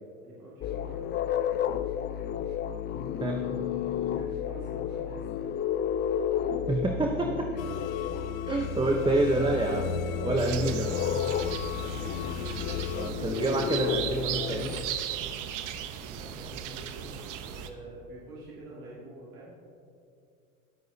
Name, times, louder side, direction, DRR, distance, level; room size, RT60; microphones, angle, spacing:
voice 1, 0.2-1.0 2.9-5.3 11.6-12.2 12.9-13.9 15.8-19.5, right 2 dB, 90° right, -8 dB, 2.8 m, -47 dB
sound 1, 0.6-14.8, left 9 dB, 25° left, 0.4 m, -32 dB
voice 2, 6.7-7.5 8.5-10.9 12.9-14.7, right 2 dB, 10° right, 2 dB, 0.9 m, -27 dB
sound 2, 7.6-13.1, left 6 dB, 75° left, 0.8 m, -37 dB
sound 3, 10.4-17.7, right 9 dB, 50° right, 1.1 m, -37 dB
22.0 x 8.7 x 2.8 m, 2.4 s
hypercardioid pair, 90°, 41 cm